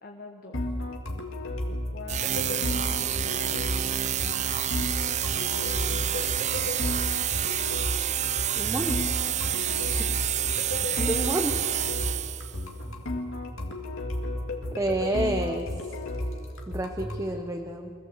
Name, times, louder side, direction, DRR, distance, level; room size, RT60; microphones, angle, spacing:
voice 1, 0.0-0.6 1.7-3.4 3.8-4.8 5.2-6.0 9.5-10.1, left 2 dB, 45° left, 2 dB, 1.4 m, -45 dB
sound 1, 0.5-17.2, left 1 dB, 65° left, 2.5 m, -33 dB
sound 2, 2.1-12.6, right 11 dB, 35° right, 0.4 m, -28 dB
voice 2, 8.5-9.0 11.0-11.5 14.7-15.7 16.7-17.9, right 1 dB, 15° right, 4 dB, 0.8 m, -29 dB
25.0 x 16.0 x 8.1 m, 2.7 s
head